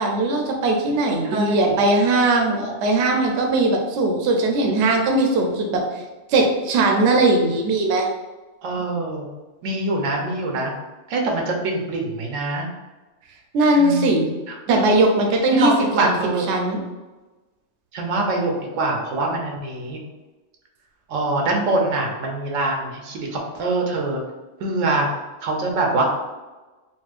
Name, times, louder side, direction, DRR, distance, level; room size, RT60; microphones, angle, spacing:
voice 1, 0.0-6.0 6.3-8.1 13.5-14.3 14.7-15.7 16.0-16.1 16.5-16.8, right 2 dB, 70° right, 1 dB, 0.8 m, -19 dB
voice 2, 1.2-1.8 8.6-9.3 9.6-10.7 11.1-12.7 13.7-14.8 15.5-16.4 17.9-20.0 21.1-24.2 24.6-25.1 25.4-26.0, right 2 dB, 90° right, 0 dB, 1.0 m, -24 dB
4.2 x 2.1 x 2.4 m, 1.2 s
omnidirectional pair, 1.3 m